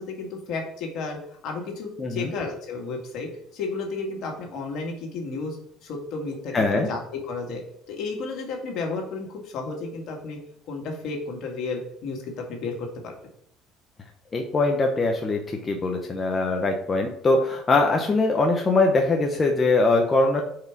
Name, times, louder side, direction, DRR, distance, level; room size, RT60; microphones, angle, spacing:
voice 1, 0.0-7.6 7.9-10.4 10.7-13.1, left 3 dB, 65° left, 1 dB, 2.0 m, -32 dB
voice 2, 2.0-2.3 6.5-6.9 14.3-20.4, left 3 dB, 30° left, 2 dB, 0.9 m, -22 dB
4.9 x 4.7 x 5.9 m, 0.69 s
supercardioid pair, 95°, 0 cm